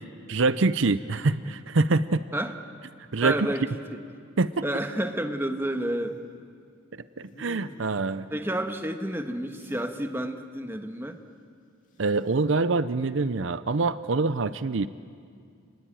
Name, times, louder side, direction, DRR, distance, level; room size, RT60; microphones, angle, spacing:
voice 1, 0.3-2.2 3.1-3.4 4.4-4.6 7.2-8.3 12.0-14.9, right 3 dB, 70° right, 14 dB, 0.6 m, -25 dB
voice 2, 3.2-3.8 4.6-6.2 8.3-11.2, right 1 dB, 10° right, 6 dB, 1.4 m, -30 dB
sound 1, 5.7-6.3 7.2-8.1 9.5-10.0 12.0-12.4, equal, 40° left, 2.3 m, -49 dB
29.0 x 20.0 x 9.1 m, 2.2 s
head